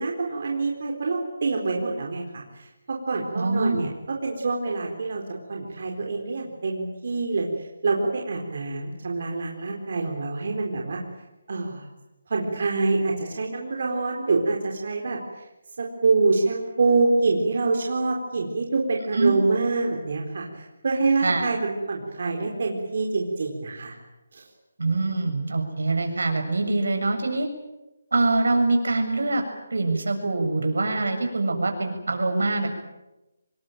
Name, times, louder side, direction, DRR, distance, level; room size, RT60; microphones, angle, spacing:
voice 1, 0.0-5.2 5.5-7.5 7.8-11.0 11.5-11.9 12.3-15.2 15.8-23.9 24.3-24.4, right 3 dB, 45° right, 0 dB, 4.1 m, -26 dB
voice 2, 3.3-3.9 19.1-19.4 21.2-21.4 24.8-27.5 28.1-29.4 29.7-32.7, right 2 dB, 80° right, 5 dB, 7.1 m, -24 dB
26.0 x 21.5 x 9.2 m, 1.0 s
hypercardioid pair, 175°, 0 cm